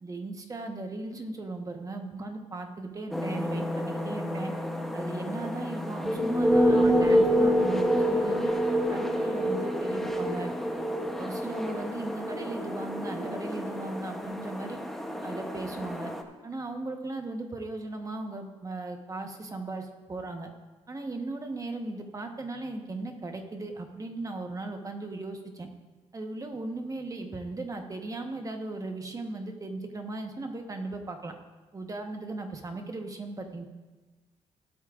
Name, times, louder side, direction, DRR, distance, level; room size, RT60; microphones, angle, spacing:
voice 1, 0.0-4.5 4.9-8.5 8.9-10.5 11.2-14.8 15.2-16.1 16.4-20.5 20.9-25.7 26.1-31.3 31.7-33.7, right 2 dB, 25° right, 4 dB, 1.2 m, -37 dB
sound 1, 3.1-16.2, equal, ahead, 0.9 m, -28 dB
16.5 x 8.6 x 2.5 m, 1.3 s
cardioid pair, 95°, 13 cm